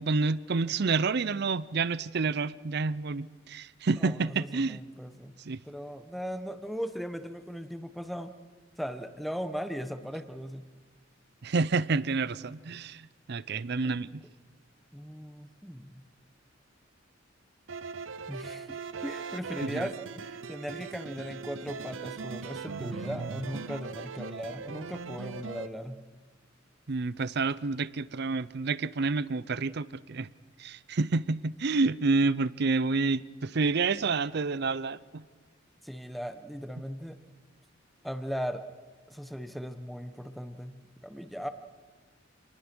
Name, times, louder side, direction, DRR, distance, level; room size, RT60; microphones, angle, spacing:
voice 1, 0.0-4.8 5.5-5.6 11.4-14.2 19.6-19.9 26.9-30.3 30.6-35.2, right 4 dB, 55° right, 0.6 m, -29 dB
voice 2, 4.0-5.3 5.6-8.3 8.8-10.6 13.8-13.9 14.9-16.0 18.3-26.0 35.8-37.2 38.0-38.6 39.1-40.8 41.0-41.5, equal, ahead, 1.1 m, -38 dB
sound 1, 17.7-25.7, right 4 dB, 80° right, 0.8 m, -39 dB
27.0 x 20.0 x 6.2 m
head